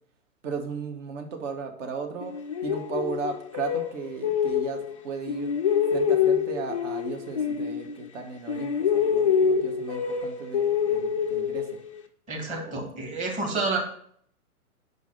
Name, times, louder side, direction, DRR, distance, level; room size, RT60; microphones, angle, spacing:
voice 1, 0.4-2.3 2.6-5.5 5.9-11.7 12.6-12.9, right 5 dB, 55° right, 5 dB, 1.3 m, -35 dB
sound 1, 2.2-5.0 5.3-8.2 8.5-12.0, left 7 dB, 25° left, 0.3 m, -26 dB
voice 2, 12.3-13.8, right 3 dB, 15° right, 1 dB, 1.2 m, -29 dB
5.4 x 4.6 x 5.7 m, 0.65 s
hypercardioid pair, 125°, 45 cm